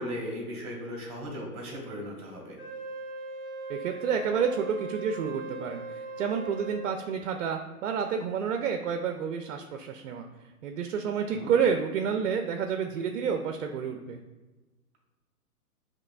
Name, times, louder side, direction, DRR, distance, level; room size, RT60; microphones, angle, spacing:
voice 1, 0.0-2.6 11.3-11.5, equal, 15° right, -2 dB, 1.4 m, -37 dB
Wind instrument woodwind instrument, 2.6-6.9, right 2 dB, ahead, 1.1 m, -39 dB
voice 2, 3.7-10.3 10.6-14.2, right 6 dB, 55° right, 5 dB, 0.5 m, -29 dB
7.5 x 2.9 x 2.3 m, 1.1 s
hypercardioid pair, 130°, 46 cm